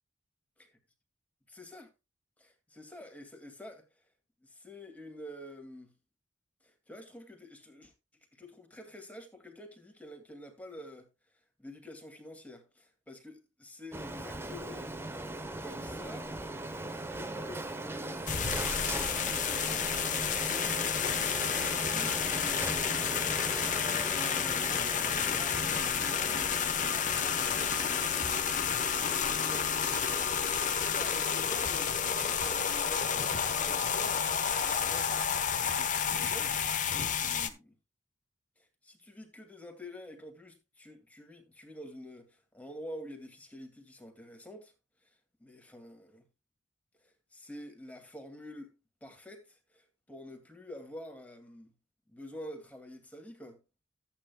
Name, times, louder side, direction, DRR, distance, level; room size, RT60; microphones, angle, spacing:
voice 1, 1.5-1.9 2.4-4.0 4.4-5.9 6.6-7.9 8.3-11.1 11.6-15.0 15.6-16.4 17.1-19.9 20.5-23.4 24.4-26.6 26.9-28.8 29.4-29.7 30.6-37.7 38.6-44.7 45.0-46.3 47.0-48.7 49.0-51.7 52.1-53.6, left 1 dB, 10° left, 2.2 m, -48 dB
Printer, 13.9-31.6, right 2 dB, 15° right, 0.8 m, -40 dB
sound 1, 18.3-37.5, left 7 dB, 40° left, 1.0 m, -30 dB
14.0 x 8.8 x 2.2 m
head